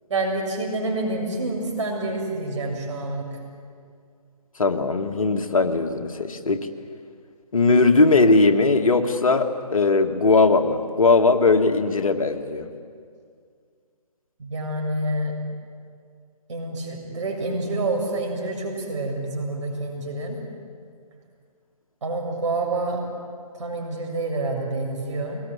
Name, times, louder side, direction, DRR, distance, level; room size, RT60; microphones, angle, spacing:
voice 1, 0.1-3.3 14.4-15.3 16.5-20.4 22.0-23.0 23.5-25.4, right 2 dB, 50° right, 0 dB, 7.2 m, -27 dB
voice 2, 4.6-6.7 7.5-12.7, left 3 dB, 60° left, 5 dB, 1.9 m, -19 dB
23.5 x 20.5 x 9.6 m, 2.2 s
figure-of-eight pair, 145°, 20 cm